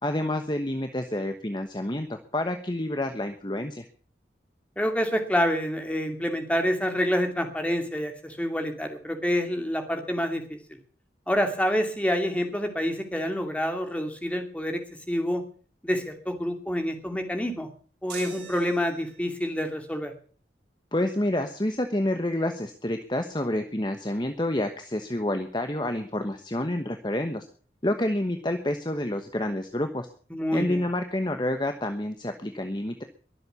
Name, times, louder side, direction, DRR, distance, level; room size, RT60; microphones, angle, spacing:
voice 1, 0.0-3.8 20.9-27.5 27.8-30.1 30.5-33.0, left 1 dB, 25° left, 6 dB, 1.1 m, -28 dB
voice 2, 4.8-10.6 11.3-14.8 15.1-15.4 15.8-17.7 18.0-20.1 30.3-30.8, equal, 10° left, 5 dB, 2.6 m, -27 dB
sound 1, 18.1-19.4, right 6 dB, 85° right, 4.8 m, -43 dB
22.0 x 7.8 x 7.0 m, 0.43 s
head